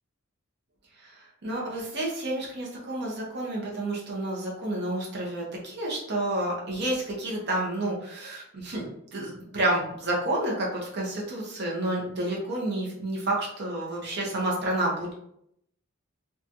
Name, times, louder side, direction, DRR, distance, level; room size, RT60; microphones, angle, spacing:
voice 1, 1.0-15.1, right 1 dB, 50° right, -3 dB, 0.7 m, -30 dB
2.9 x 2.3 x 2.6 m, 0.72 s
head